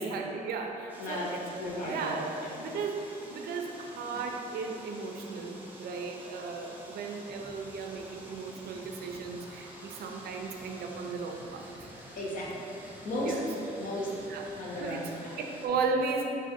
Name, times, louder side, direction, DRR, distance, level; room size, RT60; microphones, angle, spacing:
voice 1, 0.0-1.4 1.8-2.3 2.6-11.9 13.2-13.5 14.3-14.4 14.8-15.1 15.4-16.2, right 4 dB, 75° right, 3 dB, 0.4 m, -35 dB
sound 1, 0.9-15.7, right 1 dB, 10° right, 0.4 m, -49 dB
voice 2, 1.0-1.3 1.6-2.7 4.1-4.2 12.1-12.6 13.0-15.4, equal, 55° left, -5 dB, 0.8 m, -35 dB
3.9 x 2.5 x 3.8 m, 2.8 s
cardioid pair, 155°, 16 cm